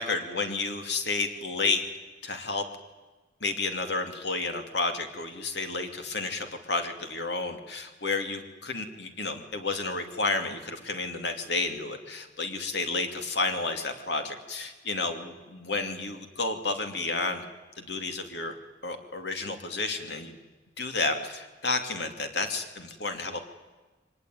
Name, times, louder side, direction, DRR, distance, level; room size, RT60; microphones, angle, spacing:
voice 1, 0.0-1.8 2.2-2.6 3.4-17.4 17.8-18.5 18.8-20.4 20.8-23.4, left 3 dB, 65° left, 6 dB, 2.7 m, -31 dB
23.5 x 19.5 x 9.4 m, 1.2 s
head